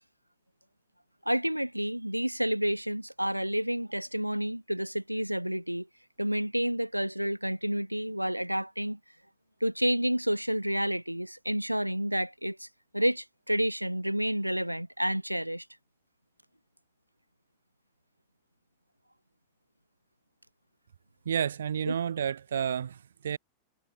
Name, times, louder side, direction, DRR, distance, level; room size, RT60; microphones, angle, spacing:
voice 1, 1.3-5.9 6.2-9.0 9.6-12.7 12.9-15.7 21.9-22.0, equal, 90° right, 2.0 m, -30 dB
voice 2, 21.2-23.4, right 8 dB, 65° right, 2.6 m, -31 dB
figure-of-eight pair, 90°, 0 cm